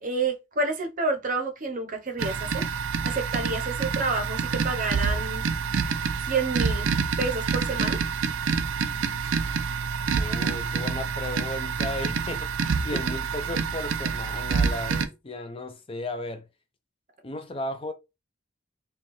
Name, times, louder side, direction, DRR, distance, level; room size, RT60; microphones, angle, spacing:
voice 1, 0.0-2.7 3.0-5.5 6.2-6.9 7.2-8.0, right 3 dB, 40° right, 0.7 m, -29 dB
sound 1, 2.2-15.1, right 5 dB, 80° right, 0.5 m, -27 dB
voice 2, 10.2-16.4 17.2-17.9, left 2 dB, 25° left, 0.5 m, -35 dB
4.4 x 2.3 x 3.0 m
head